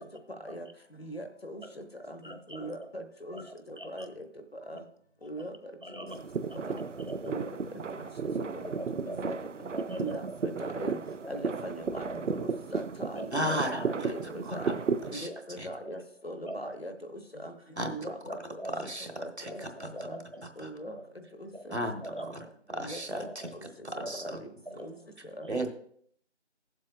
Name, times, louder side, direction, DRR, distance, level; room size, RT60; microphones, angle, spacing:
voice 1, 1.0-1.6 2.1-2.2 2.5-3.4 3.7-4.3 4.7-4.8 5.2-5.5 6.7-6.8 7.2-7.5 8.5-8.6 10.0-11.0 11.3-12.1 12.4-13.5 13.7-14.8 15.1-17.5 17.8-18.4 19.2-19.6 20.1-20.2 20.6-21.0 21.4-21.7 22.2-22.3 22.8-23.3 23.5-23.7 24.2-24.5 24.8-24.9 25.4-25.5, equal, 55° left, 8 dB, 1.0 m, -40 dB
voice 2, 2.2-2.7 3.3-4.1 5.4-5.5 5.8-6.2 6.5-7.4 8.7-9.4 9.7-10.5 11.2-11.4 11.9-12.2 13.1-13.7 15.3-15.4 15.8-16.0 16.4-16.6 18.3-18.7 19.5-20.4 20.9-21.6 22.0-22.5 23.2-23.5 24.0-24.4 24.7-24.9 25.4-25.5, right 1 dB, 45° right, 5 dB, 0.9 m, -42 dB
sound 1, 6.1-15.3, right 5 dB, 85° right, 0.5 m, -34 dB
voice 3, 13.3-14.7 15.1-15.3 15.6-15.7 17.8-18.1 18.6-19.1 19.4-19.9 20.6-20.7 21.7-22.4 22.7-23.5 23.8-24.4 25.5-25.7, equal, 65° right, 6 dB, 1.3 m, -35 dB
15.5 x 7.4 x 2.4 m, 0.62 s
figure-of-eight pair, 180°, 36 cm